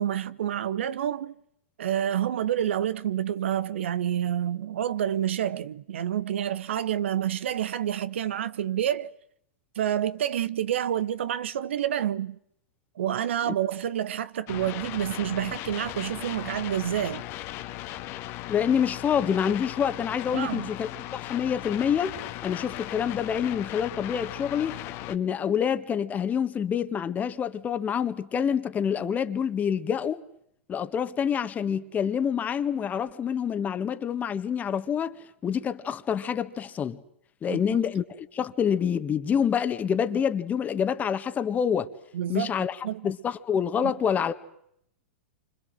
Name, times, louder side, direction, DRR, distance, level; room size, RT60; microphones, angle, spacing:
voice 1, 0.0-1.3 1.8-9.1 9.8-12.4 13.0-17.2 20.3-20.7 37.5-37.6 42.1-42.5 42.8-43.1, right 10 dB, 70° right, 1.1 m, -28 dB
sound 1, 14.5-25.2, left 15 dB, 40° left, 1.6 m, -37 dB
voice 2, 18.5-22.1 22.4-24.8 25.1-30.2 30.7-35.2 35.4-37.0 37.4-41.9 42.3-44.3, left 8 dB, 25° left, 1.7 m, -27 dB
29.0 x 26.0 x 7.8 m
hypercardioid pair, 105°, 7 cm